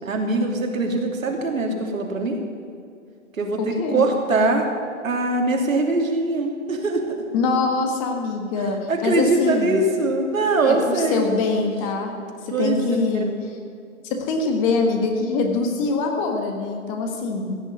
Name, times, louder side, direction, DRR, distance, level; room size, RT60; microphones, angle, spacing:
voice 1, 0.0-2.4 3.4-4.7 5.0-7.2 8.9-11.3 12.5-13.2, right 2 dB, 80° right, 1 dB, 3.0 m, -22 dB
voice 2, 3.6-4.0 7.3-9.8 10.6-13.6 14.0-17.6, left 4 dB, 25° left, 3 dB, 1.6 m, -24 dB
16.0 x 6.7 x 9.7 m, 2.4 s
hypercardioid pair, 150°, 40 cm